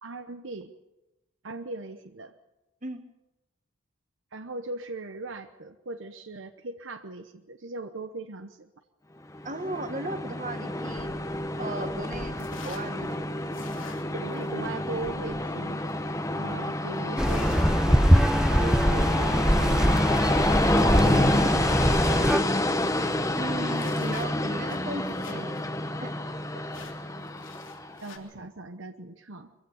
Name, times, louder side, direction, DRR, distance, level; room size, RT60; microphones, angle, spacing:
voice 1, 0.0-0.7 1.4-2.3 4.3-8.7 14.1-15.8 16.3-17.8 18.4-20.1 20.7-22.3 26.7-26.9 28.0-29.5, right 2 dB, 70° right, 8 dB, 1.0 m, -39 dB
Train, 9.3-28.0, left 1 dB, 15° left, 1.1 m, -28 dB
voice 2, 9.4-11.1 11.6-13.2 23.4-25.7 26.0-26.1, right 1 dB, 40° right, 8 dB, 1.8 m, -36 dB
sound 1, 10.9-22.1 22.5-22.6 22.8-25.6 25.9-26.0 26.7-28.2, left 2 dB, 70° left, 3.1 m, -46 dB
sound 2, 17.2-22.4, equal, 5° right, 0.7 m, -23 dB
23.5 x 15.5 x 8.1 m, 0.97 s
head